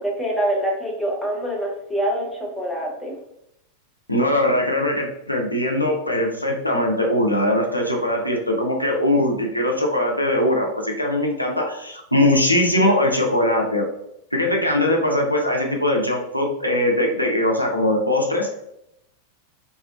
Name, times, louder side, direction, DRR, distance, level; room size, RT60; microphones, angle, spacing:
voice 1, 0.0-3.2, right 1 dB, ahead, -3 dB, 0.6 m, -25 dB
voice 2, 4.1-13.8 14.3-18.5, left 1 dB, 85° left, 1 dB, 0.4 m, -21 dB
2.6 x 2.1 x 2.3 m, 0.81 s
figure-of-eight pair, 90°, 0 cm